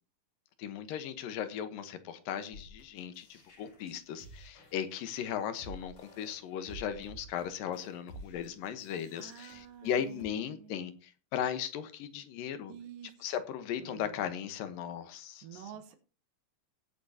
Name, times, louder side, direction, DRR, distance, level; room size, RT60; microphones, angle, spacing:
voice 1, 0.6-12.7 13.2-15.6, left 9 dB, 80° left, 2.8 m, -37 dB
sound 1, 2.5-10.3, equal, 55° left, 5.1 m, -52 dB
voice 2, 9.1-11.0 12.7-13.1 13.8-14.2 15.4-15.9, right 9 dB, 75° right, 2.8 m, -49 dB
16.5 x 8.4 x 2.8 m
omnidirectional pair, 4.0 m